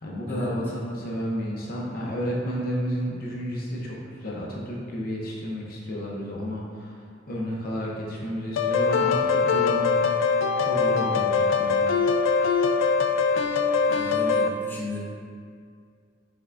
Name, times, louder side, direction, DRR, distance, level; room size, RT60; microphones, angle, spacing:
voice 1, 0.0-7.0 7.3-10.2 10.6-11.7, equal, 50° left, -3 dB, 0.6 m, -31 dB
sound 1, 8.6-14.5, left 5 dB, 80° left, 0.3 m, -22 dB
voice 2, 13.9-15.0, left 2 dB, 10° left, -6 dB, 0.7 m, -35 dB
5.4 x 3.5 x 2.5 m, 2.2 s
head